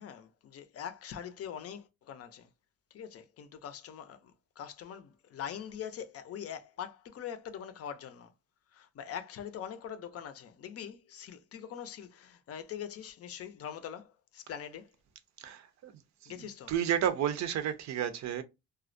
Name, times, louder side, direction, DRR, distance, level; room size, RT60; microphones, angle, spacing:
voice 1, 0.0-2.5 2.9-8.3 8.7-14.9 16.3-16.7, left 9 dB, 55° left, 0.5 m, -43 dB
voice 2, 15.4-15.9 16.2-16.3 16.7-18.4, right 10 dB, 65° right, 0.5 m, -31 dB
2.4 x 2.1 x 2.5 m
cardioid pair, 90°, 30 cm